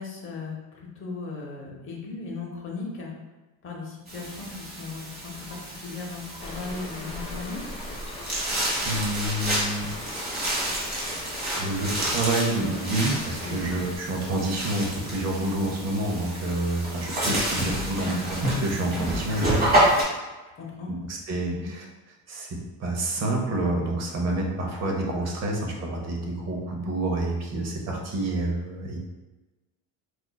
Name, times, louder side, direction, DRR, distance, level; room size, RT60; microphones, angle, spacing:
voice 1, 0.0-3.1 3.6-7.7 13.4-13.7 17.6-17.9 20.5-20.9 21.5-21.7, left 4 dB, 35° left, -2 dB, 0.8 m, -37 dB
sound 1, 4.1-20.0, right 1 dB, 25° right, 1.1 m, -29 dB
sound 2, 6.4-14.0, left 1 dB, 20° left, 0.4 m, -39 dB
voice 2, 8.8-9.9 11.5-19.6 21.1-21.8 22.3-22.5 22.8-29.0, right 2 dB, 45° right, 0 dB, 0.8 m, -28 dB
4.4 x 2.5 x 2.2 m, 1.2 s
cardioid pair, 145°, 37 cm